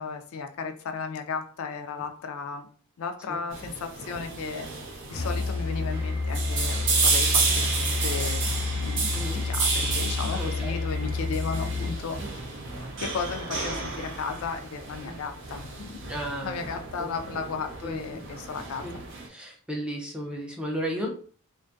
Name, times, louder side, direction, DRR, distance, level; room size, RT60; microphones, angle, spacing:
voice 1, 0.0-2.7 3.0-4.7 5.1-8.4 8.7-12.4 13.0-16.1 16.4-19.0, left 5 dB, 65° left, 6 dB, 0.3 m, -35 dB
sound 1, 3.5-19.3, right 4 dB, 55° right, 0.5 m, -31 dB
Musical instrument, 5.1-12.1, left 3 dB, 90° left, 0.7 m, -30 dB
sound 2, 5.9-11.9, right 2 dB, 90° right, 0.9 m, -49 dB
voice 2, 9.1-9.4 10.2-10.8 12.2-12.3 15.0-15.2 16.1-16.6 17.0-17.1 17.8-18.2 18.8-19.0 19.3-21.1, equal, 5° right, -1 dB, 0.4 m, -34 dB
2.5 x 2.2 x 2.5 m, 0.43 s
head